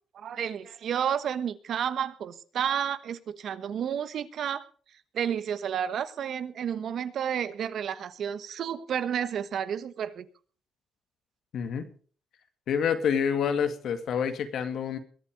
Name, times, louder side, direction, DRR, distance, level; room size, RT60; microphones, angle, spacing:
voice 1, 0.1-4.6 5.1-10.3, right 8 dB, 65° right, 13 dB, 1.2 m, -31 dB
voice 2, 11.5-11.9 12.7-15.0, left 7 dB, 70° left, 8 dB, 2.2 m, -27 dB
22.0 x 8.6 x 5.2 m, 0.43 s
cardioid pair, 90°, 0 cm